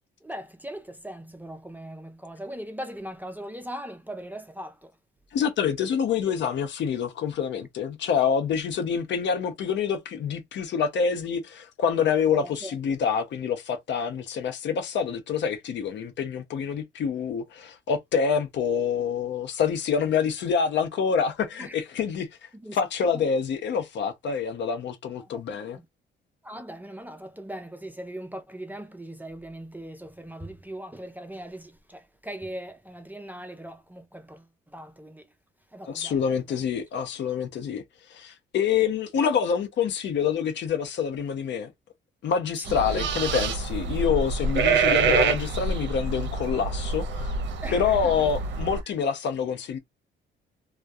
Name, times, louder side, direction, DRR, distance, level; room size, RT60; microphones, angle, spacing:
voice 1, 0.3-0.8 1.0-2.0 2.2-4.7 26.5-27.2 27.5-29.9 30.3-31.6 32.3-33.7 34.7-34.8 47.6-47.7, right 1 dB, 10° right, 0.4 m, -38 dB
voice 2, 5.3-22.3 22.7-25.8 35.9-37.8 38.1-41.7 42.2-47.3 47.7-49.8, left 7 dB, 65° left, 0.7 m, -26 dB
sound 1, 42.6-48.8, right 4 dB, 65° right, 0.6 m, -26 dB
2.3 x 2.2 x 2.6 m
cardioid pair, 90°, 20 cm